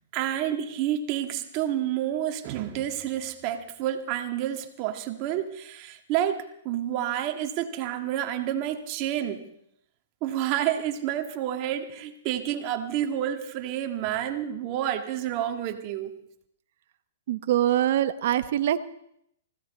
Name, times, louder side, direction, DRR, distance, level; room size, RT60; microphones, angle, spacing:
voice 1, 0.1-9.4 10.2-16.1, right 11 dB, 35° right, 5 dB, 1.7 m, -29 dB
voice 2, 17.3-18.8, right 12 dB, 55° right, 11 dB, 0.8 m, -24 dB
20.0 x 15.5 x 4.2 m, 0.73 s
hypercardioid pair, 145°, 0 cm